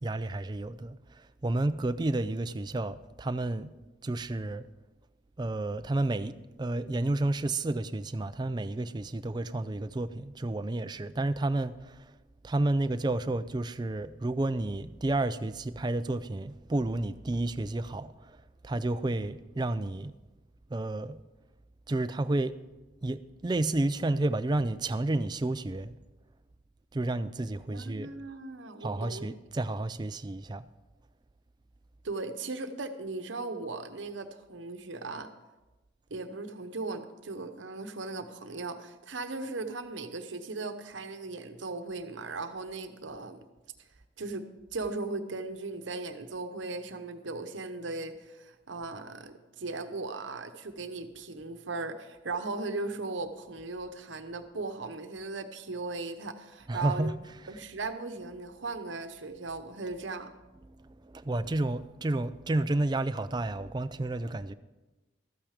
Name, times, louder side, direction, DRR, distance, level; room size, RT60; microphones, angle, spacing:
voice 1, 0.0-3.7 4.0-4.7 5.4-12.1 12.4-20.1 20.7-21.2 21.9-22.5 23.0-25.9 26.9-28.1 28.8-30.7 56.7-57.6 60.5-64.5, right 2 dB, 20° right, 0.4 m, -31 dB
voice 2, 27.7-29.3 32.0-35.3 36.1-43.4 44.2-44.4 44.7-57.2 57.5-60.3, right 3 dB, 80° right, 0.9 m, -37 dB
13.5 x 8.9 x 5.0 m
head